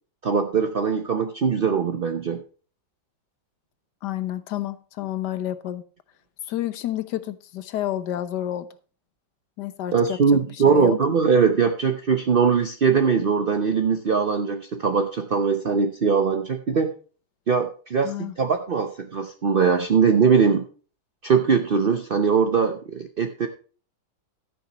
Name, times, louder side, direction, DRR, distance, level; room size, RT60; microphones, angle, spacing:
voice 1, 0.2-2.4 9.9-16.9 17.5-20.7 21.2-23.5, right 5 dB, 55° right, 0.6 m, -21 dB
voice 2, 4.0-5.8 6.4-8.7 9.6-10.2 10.7-11.0 18.0-18.3, left 12 dB, 65° left, 1.4 m, -29 dB
13.5 x 10.0 x 3.0 m
omnidirectional pair, 2.1 m